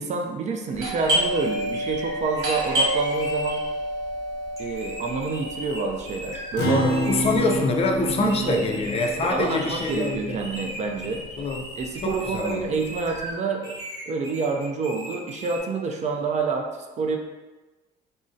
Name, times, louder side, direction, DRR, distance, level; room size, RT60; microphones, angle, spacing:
voice 1, 0.0-3.6 4.6-6.9 8.0-8.7 9.2-11.2 11.8-13.8 14.1-17.2, right 4 dB, 45° right, 3 dB, 0.4 m, -28 dB
Doorbell, 0.7-10.1 10.4-10.5 11.1-11.5 11.8-13.2, right 1 dB, 70° right, 1.4 m, -29 dB
sound 1, 1.0-3.6 4.6-6.6 6.9-7.6 8.1-13.3 13.6-15.6, equal, 20° right, 1.0 m, -38 dB
Acoustic guitar, 6.6-11.3, right 1 dB, 85° left, 0.6 m, -29 dB
voice 2, 6.7-10.4 11.4-11.7 12.0-12.7, left 3 dB, 35° left, 2 dB, 0.4 m, -25 dB
3.7 x 2.0 x 2.5 m, 1.2 s
cardioid pair, 110°, 17 cm